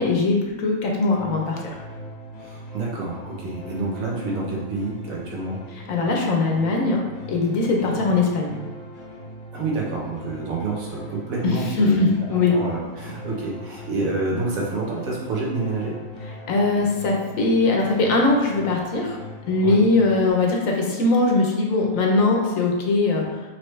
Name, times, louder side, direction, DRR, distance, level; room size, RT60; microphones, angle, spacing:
voice 1, 0.0-1.8 5.9-7.0 7.3-8.5 11.8-12.6 16.5-19.2 19.5-23.4, left 3 dB, 65° left, 0 dB, 1.0 m, -21 dB
sound 1, 1.1-20.3, equal, 45° left, 0.5 m, -40 dB
voice 2, 2.4-5.6 7.9-8.0 9.5-16.0 19.6-19.8, right 3 dB, 70° right, -3 dB, 1.3 m, -28 dB
4.5 x 3.1 x 3.1 m, 1.2 s
omnidirectional pair, 1.6 m